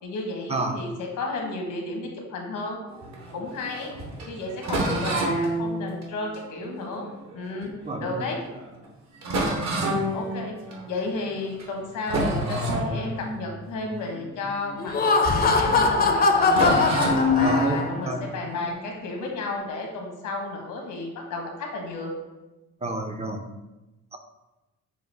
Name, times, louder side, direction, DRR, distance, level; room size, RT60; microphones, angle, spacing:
voice 1, 0.0-2.8 3.3-3.9 4.3-7.1 7.3-7.7 8.0-8.4 10.1-10.6 10.9-16.8 17.3-22.1, left 3 dB, 80° left, 1 dB, 1.1 m, -33 dB
sound 1, 2.9-7.9 8.4-8.6 8.8-8.9 9.2-11.1 11.5-11.8 12.0-15.4 15.7-15.8 16.5-19.5, equal, 60° right, 1.1 m, -29 dB
voice 2, 7.9-8.2 9.4-9.5 17.4-17.8 18.1-18.2 22.8-23.4 24.1-24.2, right 2 dB, 20° right, 4 dB, 0.5 m, -29 dB
Laughter, 14.8-18.0, left 3 dB, 30° left, 0.5 m, -21 dB
6.7 x 2.4 x 3.3 m, 1.0 s
cardioid pair, 90°, 30 cm